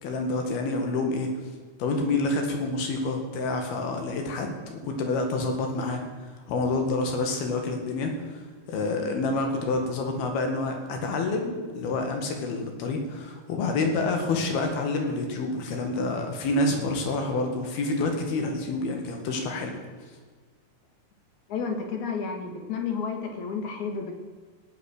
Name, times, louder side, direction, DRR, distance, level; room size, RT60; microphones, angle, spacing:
voice 1, 0.0-1.3 1.8-6.0 6.5-8.4 8.7-19.8, left 3 dB, 80° left, 3 dB, 3.7 m, -28 dB
voice 2, 21.5-24.1, left 5 dB, 60° left, 4 dB, 2.7 m, -31 dB
16.5 x 8.9 x 6.5 m, 1.5 s
omnidirectional pair, 4.4 m